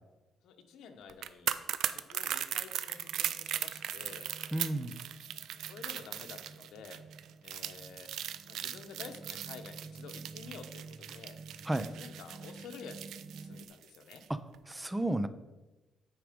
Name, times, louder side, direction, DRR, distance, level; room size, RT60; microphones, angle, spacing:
voice 1, 0.4-1.6 1.8-4.3 5.6-7.0 7.4-8.1 8.5-11.4 12.0-13.1 13.4-14.2, left 6 dB, 80° left, 6 dB, 0.9 m, -50 dB
sound 1, 1.1-14.2 14.5-14.7, right 10 dB, 75° right, 0.4 m, -38 dB
sound 2, 2.6-13.7, right 4 dB, 35° right, 0.8 m, -51 dB
voice 2, 4.5-4.9 11.7-11.9 14.3-14.4 14.7-15.3, right 1 dB, 10° right, 12 dB, 0.4 m, -32 dB
9.3 x 4.8 x 5.1 m, 1.1 s
cardioid pair, 170°, 0 cm